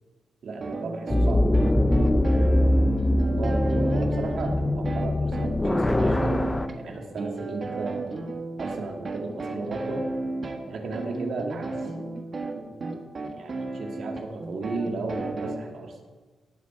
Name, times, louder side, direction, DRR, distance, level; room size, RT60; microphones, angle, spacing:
voice 1, 0.4-1.5 1.8-2.3 3.2-8.1 8.6-10.1 10.7-11.7 13.3-16.0, right 3 dB, 60° right, 2 dB, 2.3 m, -34 dB
sound 1, 0.6-15.6, right 2 dB, 35° right, 1.5 m, -33 dB
sound 2, 1.1-6.7, left 1 dB, 15° left, 0.4 m, -22 dB
18.0 x 9.2 x 4.6 m, 1.3 s
wide cardioid pair, 145°, 0 cm